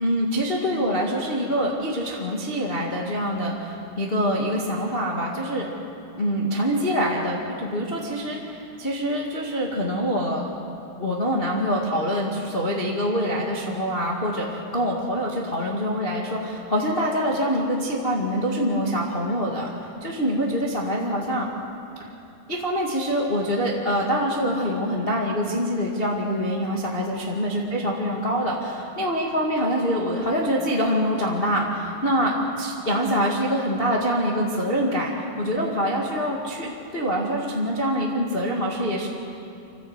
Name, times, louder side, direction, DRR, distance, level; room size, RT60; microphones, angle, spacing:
voice 1, 0.0-5.6 6.1-10.4 11.0-19.7 20.0-21.5 22.0-22.1 22.5-35.1 35.4-39.1, equal, 55° left, -2 dB, 0.6 m, -25 dB
25.5 x 15.0 x 8.0 m, 2.8 s
omnidirectional pair, 4.8 m